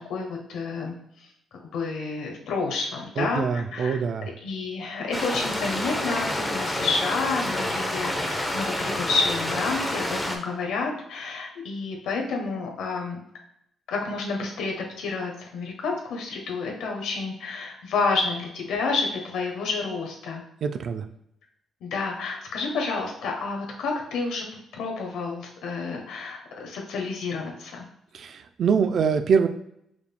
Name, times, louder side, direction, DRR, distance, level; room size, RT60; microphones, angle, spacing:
voice 1, 0.1-1.3 1.7-4.0 4.4-13.2 13.9-20.4 21.8-24.5 24.7-27.8, left 4 dB, 85° left, 1 dB, 1.0 m, -29 dB
voice 2, 3.2-4.3 20.6-21.1 28.1-29.5, right 6 dB, 60° right, 9 dB, 0.4 m, -24 dB
sound 1, 5.1-10.4, left 1 dB, 10° left, 0.7 m, -28 dB
5.0 x 3.4 x 2.2 m, 0.78 s
cardioid pair, 90°, 0 cm